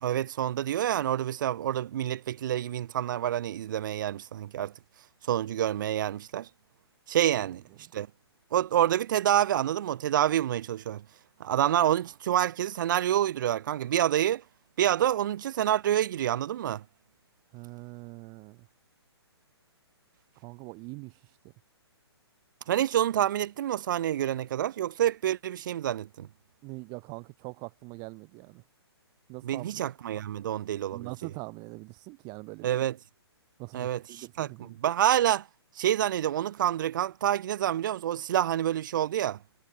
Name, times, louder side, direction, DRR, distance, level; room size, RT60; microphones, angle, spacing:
voice 1, 0.0-4.7 5.3-6.5 7.1-7.6 7.9-8.1 8.5-11.0 11.4-14.4 14.8-16.8 22.7-26.3 29.4-31.1 32.6-33.0 33.7-35.5 35.8-39.4, right 11 dB, 45° right, 0.6 m, -27 dB
voice 2, 17.5-18.7 20.4-21.2 26.6-28.6 29.3-29.8 30.9-32.7 33.6-34.8, right 30 dB, 30° right, 3.0 m, -43 dB
figure-of-eight pair, 125°, 14 cm